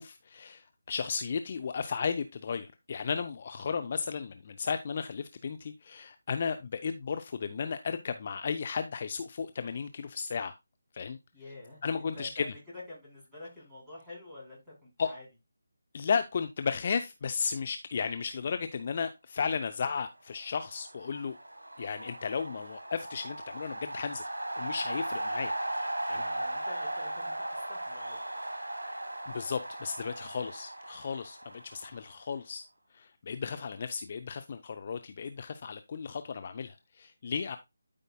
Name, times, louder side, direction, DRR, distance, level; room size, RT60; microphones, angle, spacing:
voice 1, 0.0-10.5 10.9-11.2 11.8-12.5 15.0-15.1 15.9-21.4 21.8-24.2 24.6-25.5 26.1-26.2 29.3-32.6 32.9-37.6, left 6 dB, 35° left, 0.5 m, -34 dB
voice 2, 3.9-4.3 11.3-15.3 26.1-28.2 33.4-33.9, left 1 dB, 5° right, 3.7 m, -48 dB
sound 1, 20.3-32.3, right 1 dB, 70° right, 1.7 m, -37 dB
12.0 x 5.1 x 2.2 m
figure-of-eight pair, 155°, 0 cm